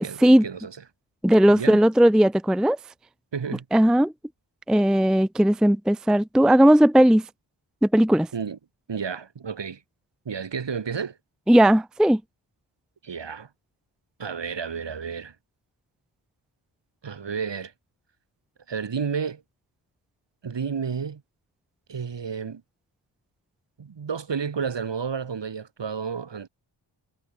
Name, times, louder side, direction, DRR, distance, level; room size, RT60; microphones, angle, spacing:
voice 1, 0.0-0.8 1.5-1.8 3.3-3.6 8.3-8.6 8.9-9.8 10.3-11.2 13.0-13.5 14.2-15.3 17.0-17.7 18.7-19.4 20.4-21.2 21.9-22.6 23.8-26.5, right 6 dB, 60° right, 2.5 m, -31 dB
voice 2, 1.2-2.8 3.7-4.1 4.7-7.3 7.8-8.3 11.5-12.2, right 1 dB, ahead, 0.5 m, -17 dB
wide cardioid pair, 125°, 48 cm